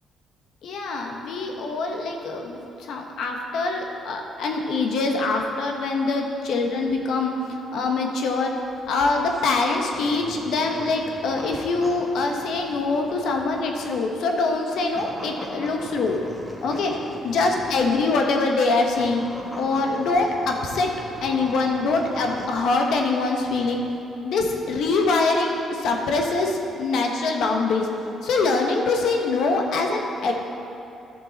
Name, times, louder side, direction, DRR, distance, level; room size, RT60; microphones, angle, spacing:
voice 1, 0.6-7.4 7.7-8.5 8.9-16.2 16.6-16.9 17.2-19.2 19.6-20.9 21.2-23.8 24.2-27.9 28.2-30.3, left 3 dB, 75° left, 2 dB, 1.1 m, -24 dB
sound 1, 8.6-18.3 18.9-22.7 23.1-23.7, equal, ahead, 1.4 m, -41 dB
11.5 x 6.8 x 4.0 m, 2.8 s
cardioid pair, 90°, 0 cm